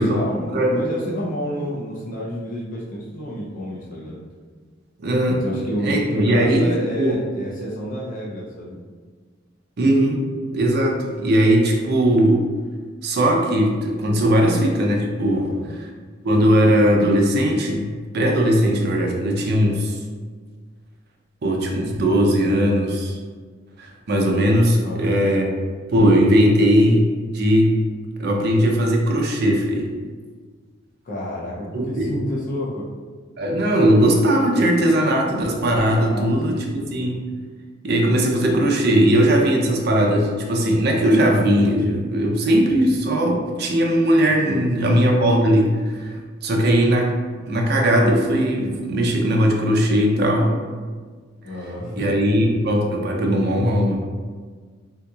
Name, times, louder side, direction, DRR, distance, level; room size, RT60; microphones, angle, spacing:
voice 1, 0.0-4.2 5.2-8.8 15.3-15.7 24.8-25.2 31.0-32.9 36.0-37.0 44.5-44.9 46.5-46.7 51.4-52.1, equal, 45° left, -6 dB, 0.6 m, -29 dB
voice 2, 0.5-0.8 5.0-5.4 5.8-7.2 9.8-10.3 10.5-12.5 13.0-15.5 16.2-20.0 21.4-23.2 23.8-25.5 25.9-27.1 27.3-27.7 28.2-29.9 31.7-32.1 33.4-37.2 37.8-47.1 47.5-50.6 52.0-54.0, equal, 55° right, 0 dB, 0.6 m, -19 dB
3.7 x 2.8 x 2.3 m, 1.5 s
head